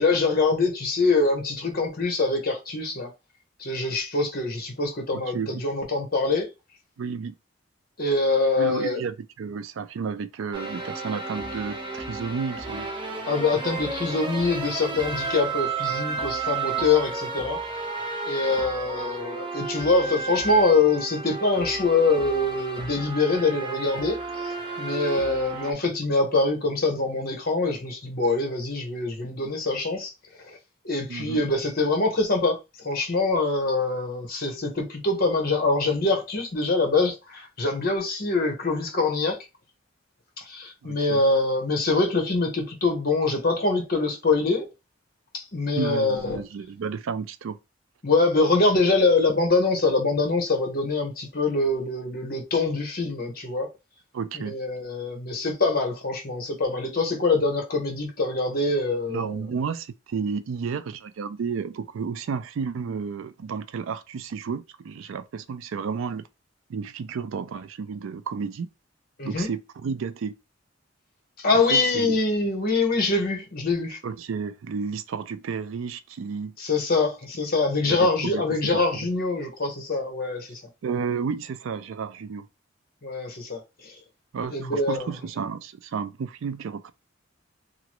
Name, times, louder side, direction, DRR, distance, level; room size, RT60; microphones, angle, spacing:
voice 1, 0.0-3.1 3.6-6.5 8.0-9.0 13.3-17.6 18.3-30.1 30.8-39.4 40.4-44.7 45.3-46.4 48.0-53.7 54.3-59.4 69.2-69.5 71.4-74.0 76.6-80.6 83.0-84.0 84.5-85.1, left 3 dB, 50° left, 1.0 m, -24 dB
voice 2, 5.1-5.6 7.0-7.3 8.6-12.9 31.1-31.4 40.8-41.2 45.8-47.6 54.1-54.6 59.1-66.3 66.7-68.7 69.2-70.3 71.7-72.2 74.0-76.6 77.9-79.1 80.8-82.5 84.3-86.9, right 5 dB, 85° right, 0.4 m, -32 dB
sound 1, 10.5-25.7, right 4 dB, 25° right, 0.6 m, -32 dB
2.9 x 2.5 x 3.0 m
head